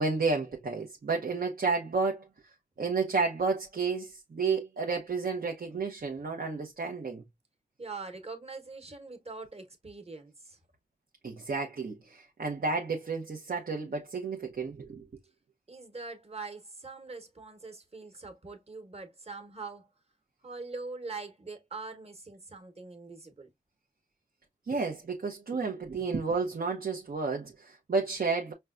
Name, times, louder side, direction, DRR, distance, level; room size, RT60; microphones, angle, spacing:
voice 1, 0.0-2.3 2.8-7.2 11.2-15.1 24.7-28.5, right 4 dB, 80° right, 0.7 m, -31 dB
voice 2, 7.8-10.6 15.7-19.9 20.4-23.5, right 3 dB, 40° right, 1.1 m, -43 dB
5.3 x 2.3 x 2.4 m
wide cardioid pair, 60°, 15 cm